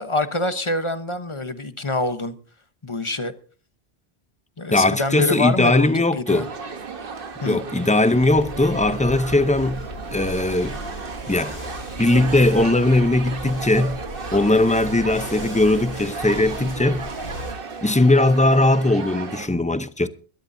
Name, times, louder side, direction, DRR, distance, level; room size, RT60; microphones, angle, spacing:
voice 1, 0.0-2.3 2.8-3.3 4.6-6.5 7.4-7.6, left 2 dB, 30° left, 1.0 m, -25 dB
voice 2, 4.7-6.5 7.5-9.8 10.1-10.8 11.3-11.6 12.0-14.0 14.3-17.1 17.8-20.1, left 2 dB, 10° left, 0.5 m, -19 dB
sound 1, 6.3-19.5, right 5 dB, 60° right, 1.3 m, -34 dB
sound 2, 8.2-17.5, equal, 50° left, 4.9 m, -36 dB
23.5 x 12.5 x 2.7 m
omnidirectional pair, 1.1 m